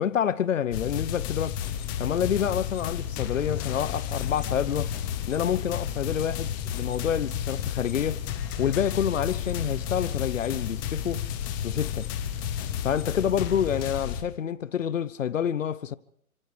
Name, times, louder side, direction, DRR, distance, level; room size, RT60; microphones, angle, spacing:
voice 1, 0.0-1.6 2.0-4.9 5.3-8.2 8.6-11.2 11.6-12.1 12.8-15.9, left 9 dB, 60° left, 1.0 m, -28 dB
sound 1, 0.7-14.2, left 9 dB, 15° left, 1.0 m, -32 dB
29.5 x 25.5 x 3.4 m
hypercardioid pair, 155°, 44 cm